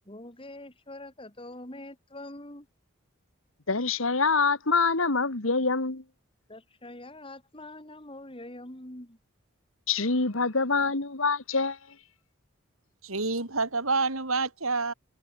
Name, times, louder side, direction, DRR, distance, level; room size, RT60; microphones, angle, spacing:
voice 1, 0.1-2.7 6.5-9.2, left 1 dB, 25° left, 4.1 m, -44 dB
voice 2, 3.7-6.0 9.9-11.8, left 4 dB, 75° left, 2.0 m, -25 dB
voice 3, 13.0-14.9, right 3 dB, 90° right, 4.1 m, -28 dB
head